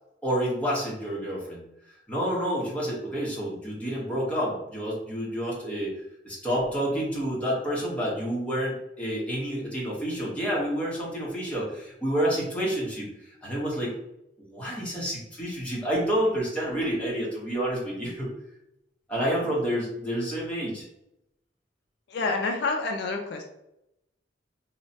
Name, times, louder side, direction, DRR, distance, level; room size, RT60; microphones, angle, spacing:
voice 1, 0.2-1.6 2.1-5.9 6.2-13.1 13.4-13.9 14.5-18.3 19.1-20.8, equal, 5° left, -6 dB, 0.8 m, -29 dB
voice 2, 22.1-23.4, left 3 dB, 60° left, 2 dB, 0.3 m, -28 dB
3.0 x 2.1 x 2.7 m, 0.83 s
head